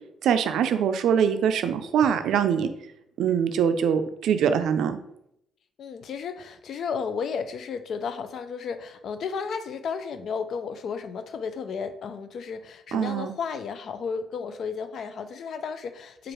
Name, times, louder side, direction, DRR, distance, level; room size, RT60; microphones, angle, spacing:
voice 1, 0.2-2.7 3.2-5.0 12.9-13.3, right 8 dB, 75° right, 9 dB, 0.4 m, -23 dB
voice 2, 5.8-16.3, left 6 dB, 65° left, 10 dB, 0.3 m, -33 dB
4.5 x 2.4 x 3.1 m, 0.77 s
cardioid pair, 90°, 0 cm